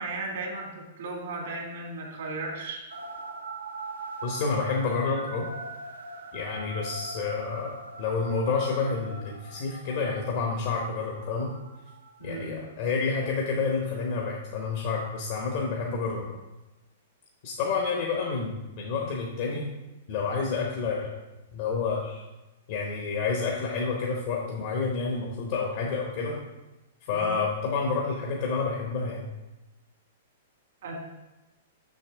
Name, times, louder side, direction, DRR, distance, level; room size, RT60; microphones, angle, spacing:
voice 1, 0.0-2.8 12.2-12.6 27.1-27.4 30.8-31.0, right 2 dB, 70° right, 0 dB, 1.8 m, -36 dB
sound 1, 2.9-12.4, right 2 dB, 90° right, 0.9 m, -41 dB
voice 2, 4.2-5.5 6.3-11.5 12.2-16.3 17.4-19.7 20.1-21.1 21.5-22.2 22.7-26.4 27.0-29.3, left 4 dB, 55° left, -1 dB, 1.0 m, -29 dB
6.5 x 6.2 x 3.5 m, 1.0 s
hypercardioid pair, 125°, 0 cm